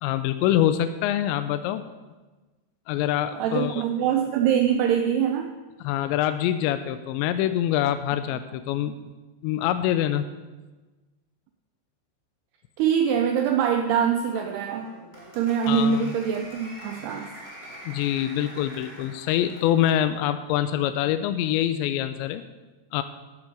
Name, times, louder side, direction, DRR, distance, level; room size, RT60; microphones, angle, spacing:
voice 1, 0.0-1.9 2.9-3.8 5.8-9.0 9.4-10.2 15.7-16.0 17.9-22.4 22.9-23.0, left 11 dB, 85° left, 10 dB, 2.7 m, -25 dB
voice 2, 3.3-5.6 12.8-14.9 15.3-17.3, right 8 dB, 90° right, 6 dB, 2.3 m, -24 dB
Applause, 14.3-20.1, equal, 25° right, 1.5 m, -45 dB
12.5 x 9.0 x 5.2 m, 1.2 s
omnidirectional pair, 5.4 m